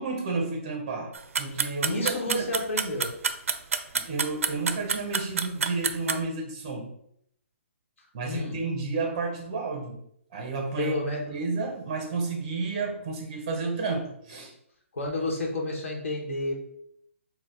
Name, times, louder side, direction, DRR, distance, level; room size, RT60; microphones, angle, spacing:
voice 1, 0.0-2.5 3.9-6.9 8.1-10.0 10.3-11.0 11.3-14.5, right 3 dB, 25° right, 2 dB, 0.6 m, -31 dB
sound 1, 1.1-6.2, right 6 dB, 75° right, 0.4 m, -27 dB
voice 2, 1.8-3.1 8.2-8.6 10.8-11.2 14.9-16.5, left 1 dB, 65° left, -1 dB, 1.1 m, -30 dB
4.5 x 2.2 x 3.7 m, 0.71 s
hypercardioid pair, 180°, 7 cm